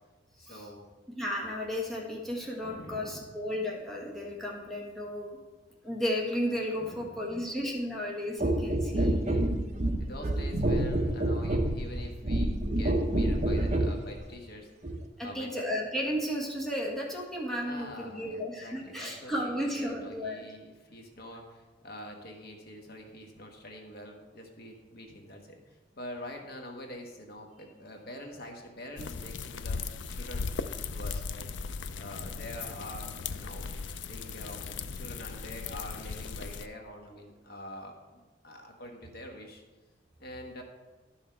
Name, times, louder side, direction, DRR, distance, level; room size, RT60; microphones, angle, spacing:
voice 1, 0.4-0.8 2.6-3.4 6.8-7.5 8.3-8.4 8.7-9.5 10.0-14.9 15.2-15.5 17.6-30.5 30.9-31.5 31.9-33.8 34.1-39.6 40.2-40.6, left 1 dB, 55° left, 2 dB, 1.2 m, -45 dB
voice 2, 1.2-5.3 5.8-9.2 15.2-20.4, equal, ahead, -3 dB, 1.3 m, -33 dB
sound 1, 8.4-14.0 14.8-15.0, right 1 dB, 40° right, 0.8 m, -28 dB
sound 2, 29.0-36.7, left 5 dB, 85° left, 0.5 m, -37 dB
12.0 x 5.8 x 4.5 m, 1.2 s
head